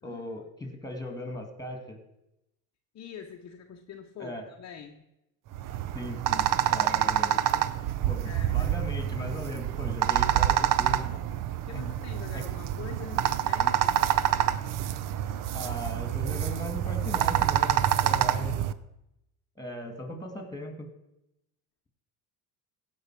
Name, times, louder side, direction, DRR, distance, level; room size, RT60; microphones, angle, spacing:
voice 1, 0.0-2.0 4.2-4.5 5.9-7.5 8.1-11.1 11.7-11.8 12.3-12.4 15.5-18.6 19.6-20.9, left 1 dB, 10° left, 5 dB, 2.3 m, -38 dB
voice 2, 2.9-5.0 8.2-8.7 11.7-14.0, left 7 dB, 35° left, 3 dB, 0.9 m, -44 dB
sound 1, 5.5-18.7, right 11 dB, 45° right, 0.6 m, -27 dB
15.5 x 5.6 x 4.8 m, 0.87 s
hypercardioid pair, 85°, 48 cm